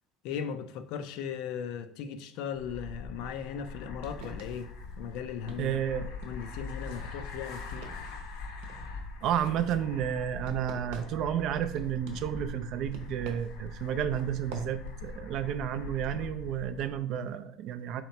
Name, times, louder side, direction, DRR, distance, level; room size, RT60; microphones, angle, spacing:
voice 1, 0.2-4.7 5.0-5.8 6.2-7.9, left 7 dB, 60° left, 0.4 m, -37 dB
sound 1, 2.5-17.0, left 4 dB, 75° left, 0.8 m, -42 dB
sound 2, 3.5-15.2, right 4 dB, 90° right, 0.8 m, -50 dB
voice 2, 5.6-6.1 9.2-18.0, right 9 dB, 45° right, 0.3 m, -31 dB
4.0 x 2.9 x 4.4 m
cardioid pair, 175°, 0 cm